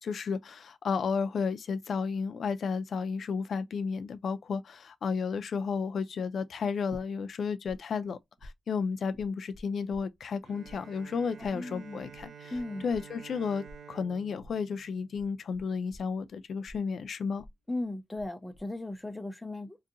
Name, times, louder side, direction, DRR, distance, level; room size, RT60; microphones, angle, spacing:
voice 1, 0.0-12.5 12.8-17.5, left 5 dB, 65° left, 0.3 m, -33 dB
sound 1, 6.9-7.8 8.0-10.4 10.6-18.3 18.5-19.1, equal, 65° right, 1.0 m, -51 dB
Bowed string instrument, 10.4-15.9, right 7 dB, 85° right, 0.4 m, -51 dB
voice 2, 11.4-12.0 12.5-12.8 17.7-19.8, left 2 dB, 10° left, 0.5 m, -37 dB
3.8 x 2.6 x 2.5 m
wide cardioid pair, 165°, 0 cm